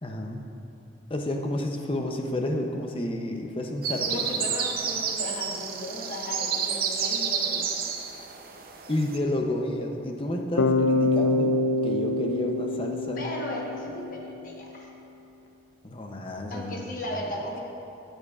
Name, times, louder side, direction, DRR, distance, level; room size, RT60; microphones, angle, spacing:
voice 1, 0.0-0.4 1.1-4.3 8.9-13.2 15.8-16.8, left 1 dB, 30° left, 3 dB, 0.6 m, -30 dB
sound 1, 3.8-9.2, right 6 dB, 55° right, 0.7 m, -30 dB
voice 2, 4.1-7.7 13.1-14.9 16.5-17.6, left 1 dB, 50° left, -1 dB, 1.1 m, -36 dB
Bass guitar, 10.6-14.5, left 2 dB, 85° left, 0.4 m, -26 dB
13.0 x 9.1 x 2.4 m, 2.9 s
head